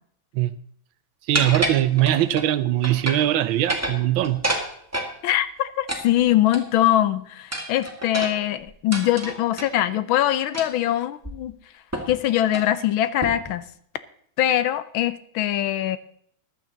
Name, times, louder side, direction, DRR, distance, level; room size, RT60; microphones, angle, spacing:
sound 1, 1.3-2.5 2.8-3.3 3.6-5.1 5.9-6.9 7.5-9.7 10.5-10.8 11.2-11.3 11.9-12.2 12.5-12.7 13.2-13.5, right 1 dB, 10° right, 1.4 m, -29 dB
voice 1, 1.3-4.4, right 13 dB, 80° right, 15 dB, 1.4 m, -21 dB
voice 2, 5.2-11.6 12.1-13.7 14.4-16.0, left 12 dB, 90° left, 14 dB, 1.5 m, -22 dB
14.5 x 11.0 x 4.0 m, 0.64 s
omnidirectional pair, 2.2 m